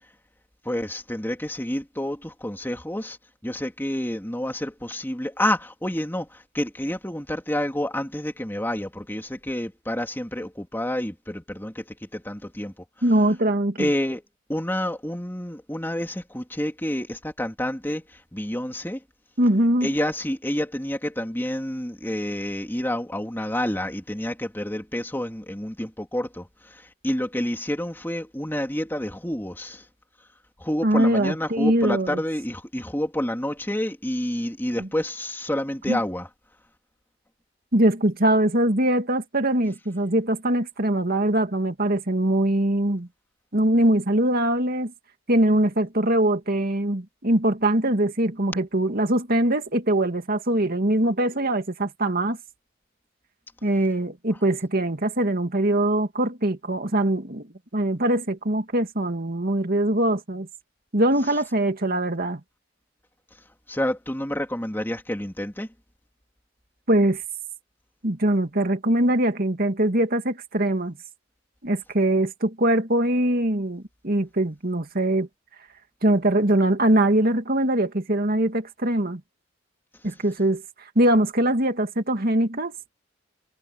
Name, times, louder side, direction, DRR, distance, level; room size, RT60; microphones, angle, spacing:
voice 1, 0.6-3.2 3.4-11.8 12.1-12.7 13.8-14.2 14.5-18.0 18.3-19.0 19.8-29.8 30.6-36.3 63.7-65.7, left 1 dB, 10° left, 3.0 m, -29 dB
voice 2, 13.0-13.9 19.4-19.9 30.8-32.2 34.8-34.9 35.9-36.0 37.7-43.1 43.5-44.9 45.3-52.4 53.6-57.5 57.7-60.5 60.9-62.4 66.9-67.2 68.0-71.0 71.6-75.3 76.0-79.2 80.0-80.6 81.0-82.7, right 1 dB, 50° right, 2.3 m, -22 dB
head